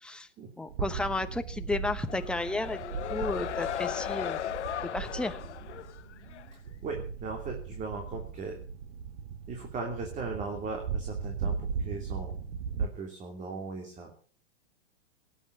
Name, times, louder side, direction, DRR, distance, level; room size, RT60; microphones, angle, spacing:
voice 1, 0.6-4.4 4.8-5.4, left 2 dB, 5° left, 8 dB, 1.0 m, -33 dB
sound 1, 0.7-12.9, right 6 dB, 65° right, 2.2 m, -38 dB
sound 2, 2.0-6.5, left 11 dB, 85° left, 1.1 m, -36 dB
voice 2, 6.8-8.6 9.5-12.3 12.8-14.1, right 4 dB, 20° right, 3 dB, 3.1 m, -38 dB
18.5 x 10.0 x 7.0 m, 0.42 s
hypercardioid pair, 145°, 34 cm